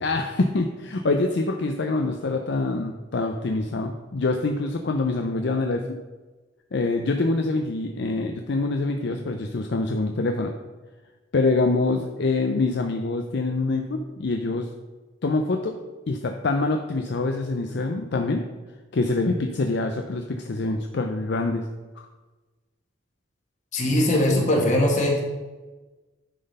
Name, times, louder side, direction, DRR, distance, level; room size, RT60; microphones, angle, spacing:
voice 1, 0.0-5.8 6.7-10.5 11.3-14.7 15.2-15.7 16.1-18.4 18.9-21.7 22.0-22.1, left 3 dB, 60° left, 4 dB, 0.5 m, -25 dB
voice 2, 23.7-25.2, left 1 dB, 40° left, -1 dB, 1.7 m, -20 dB
10.0 x 4.0 x 5.3 m, 1.2 s
head